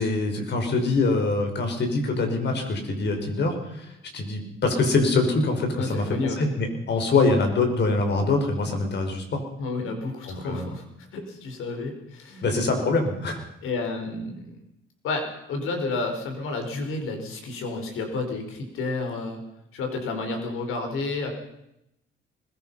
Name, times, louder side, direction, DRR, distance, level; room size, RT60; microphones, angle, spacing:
voice 1, 0.0-9.4 10.3-10.7 12.4-13.4, left 3 dB, 55° left, 4 dB, 5.6 m, -24 dB
voice 2, 5.8-6.5 9.6-10.8 11.1-12.4 13.6-14.6 15.0-19.4 19.7-21.3, left 3 dB, 80° left, 5 dB, 5.3 m, -31 dB
21.0 x 21.0 x 5.8 m, 0.82 s
cardioid pair, 115°, 21 cm